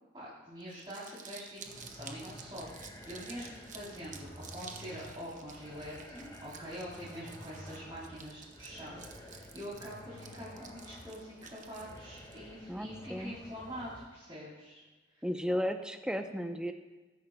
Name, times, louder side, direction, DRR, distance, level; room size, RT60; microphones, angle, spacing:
voice 1, 0.1-14.8 15.2-15.3, equal, 25° right, -10 dB, 3.4 m, -45 dB
Crumpling crinkling, 0.6-12.4, right 6 dB, 40° right, 0.9 m, -52 dB
sound 1, 1.6-14.1, equal, 20° left, 1.6 m, -51 dB
voice 2, 12.7-13.4 15.2-16.7, equal, 5° right, 6 dB, 0.6 m, -34 dB
19.5 x 10.0 x 2.3 m, 1.3 s
head